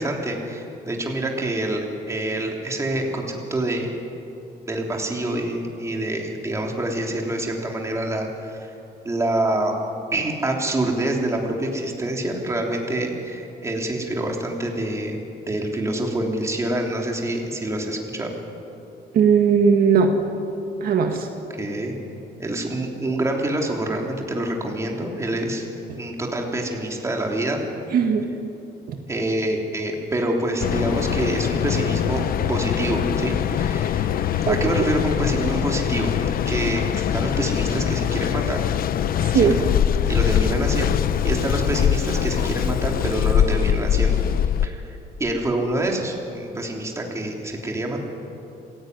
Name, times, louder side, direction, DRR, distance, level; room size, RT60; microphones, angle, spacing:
voice 1, 0.0-3.9 4.6-8.7 9.0-9.7 10.1-15.2 15.4-18.3 21.6-21.9 22.4-25.6 26.0-27.6 29.1-38.6 39.3-39.7 40.1-41.0 41.2-44.8 45.2-48.0, right 1 dB, 15° right, 0 dB, 3.4 m, -26 dB
voice 2, 19.1-20.1 20.8-21.3 27.9-28.2 34.5-34.6 39.2-39.6, right 6 dB, 60° right, 3 dB, 1.9 m, -18 dB
Mechanical fan, 30.6-44.7, left 9 dB, 60° left, 0.8 m, -23 dB
27.0 x 16.5 x 9.6 m, 2.8 s
cardioid pair, 160°, 17 cm